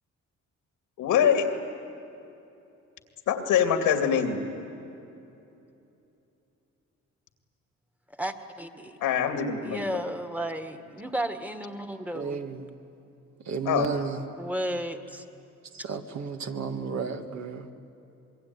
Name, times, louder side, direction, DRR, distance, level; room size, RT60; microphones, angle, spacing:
voice 1, 1.0-1.5 3.3-4.4 9.0-9.8 13.7-13.9, left 8 dB, 90° left, 6 dB, 2.6 m, -24 dB
voice 2, 8.1-9.0 9.6-12.4 14.4-15.3, right 1 dB, 5° right, 7 dB, 1.7 m, -33 dB
voice 3, 12.1-12.7 13.5-14.2 15.7-17.7, right 5 dB, 65° right, 6 dB, 1.9 m, -32 dB
25.5 x 22.0 x 9.6 m, 2.8 s
cardioid pair, 90°, 30 cm